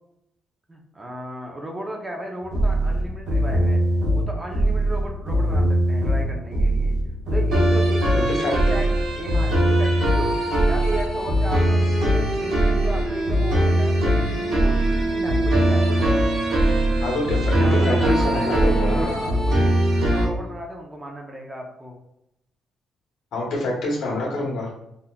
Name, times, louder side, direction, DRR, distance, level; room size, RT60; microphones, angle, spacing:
voice 1, 0.7-3.8 4.1-6.9 7.3-16.4 17.5-19.8 20.0-22.0, right 1 dB, 20° right, 1 dB, 0.8 m, -35 dB
sound 1, 2.4-20.3, right 1 dB, 80° right, 1.0 m, -20 dB
voice 2, 8.1-8.8 17.0-19.1 23.3-24.7, left 2 dB, 80° left, -3 dB, 1.4 m, -26 dB
4.1 x 2.7 x 2.4 m, 0.83 s
cardioid pair, 90°, 0 cm